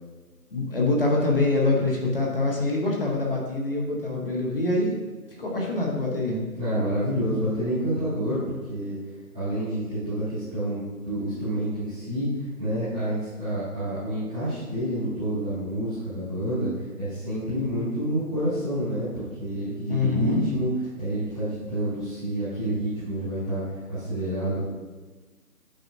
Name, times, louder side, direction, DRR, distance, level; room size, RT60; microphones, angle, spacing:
voice 1, 0.5-5.0 5.4-6.4 19.9-20.4, left 2 dB, 35° left, -1 dB, 0.9 m, -25 dB
voice 2, 6.5-8.9 9.3-12.3 12.6-20.7 21.0-24.6, right 1 dB, 5° left, -20 dB, 0.9 m, -28 dB
8.6 x 4.8 x 2.6 m, 1.3 s
figure-of-eight pair, 160°, 47 cm